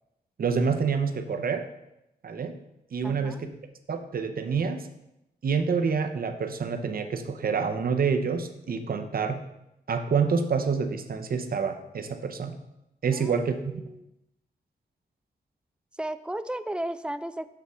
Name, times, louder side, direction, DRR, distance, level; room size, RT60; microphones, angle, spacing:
voice 1, 0.4-1.7 2.2-2.6 2.9-3.5 3.9-4.9 5.4-9.4 9.9-12.6 13.0-13.8, right 5 dB, 55° right, 6 dB, 0.7 m, -27 dB
voice 2, 3.0-3.4 13.1-14.1 16.0-17.5, right 1 dB, 5° right, 13 dB, 0.4 m, -35 dB
6.7 x 6.4 x 3.6 m, 0.87 s
cardioid pair, 75°, 18 cm